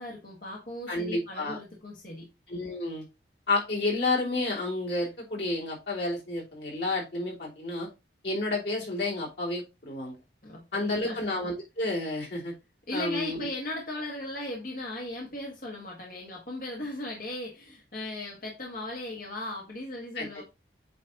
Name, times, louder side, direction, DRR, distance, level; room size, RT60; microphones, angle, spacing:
voice 1, 0.0-2.3 10.4-11.2 12.9-20.4, left 1 dB, 50° left, 1.6 m, -37 dB
voice 2, 0.9-1.6 2.5-3.0 3.5-7.9 8.2-10.2 10.7-12.5 12.9-13.5 20.1-20.4, left 2 dB, 80° left, 3.0 m, -30 dB
8.4 x 3.3 x 3.8 m
head